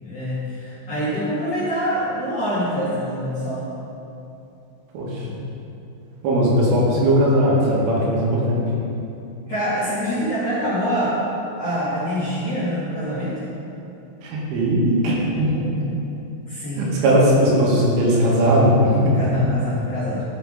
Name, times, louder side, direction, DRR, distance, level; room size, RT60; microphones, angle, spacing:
voice 1, 0.0-3.6 9.5-11.3 11.6-13.5 16.5-16.9 19.2-20.2, equal, 50° left, -11 dB, 2.1 m, -25 dB
voice 2, 4.9-5.4 6.2-8.7 14.2-15.6 16.8-19.2, equal, 80° right, -5 dB, 4.3 m, -18 dB
13.0 x 7.3 x 3.8 m, 2.8 s
omnidirectional pair, 5.7 m